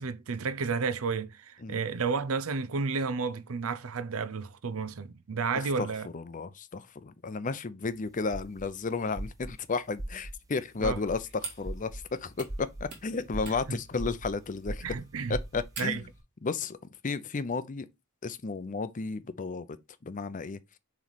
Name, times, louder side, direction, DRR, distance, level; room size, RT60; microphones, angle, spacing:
voice 1, 0.0-6.1 10.8-11.0 13.7-13.8 14.8-15.4 15.8-16.0, right 5 dB, 85° right, 0.6 m, -32 dB
voice 2, 5.8-14.8 15.3-16.1 16.4-16.8 17.0-17.9 18.2-19.7 20.0-20.6, left 4 dB, 40° left, 0.5 m, -33 dB
sound 1, 7.8-15.9, right 1 dB, 15° right, 0.6 m, -40 dB
sound 2, 10.8-16.2, right 4 dB, 55° right, 2.8 m, -47 dB
7.2 x 3.2 x 4.0 m
head